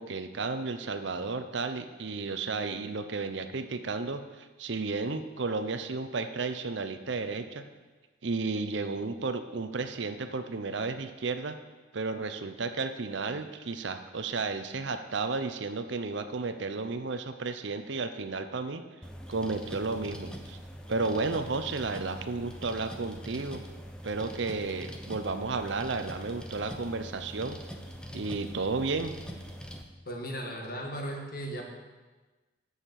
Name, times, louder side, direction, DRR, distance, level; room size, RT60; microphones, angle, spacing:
voice 1, 0.0-7.6 8.2-11.6 11.9-18.8 19.3-20.6 20.9-23.6 24.0-27.6 28.1-29.2, right 3 dB, 65° right, 8 dB, 0.7 m, -33 dB
sound 1, 19.0-29.8, equal, 5° left, 0.6 m, -43 dB
voice 2, 30.0-31.7, right 1 dB, 50° left, 1 dB, 1.6 m, -36 dB
7.9 x 6.5 x 7.5 m, 1.2 s
head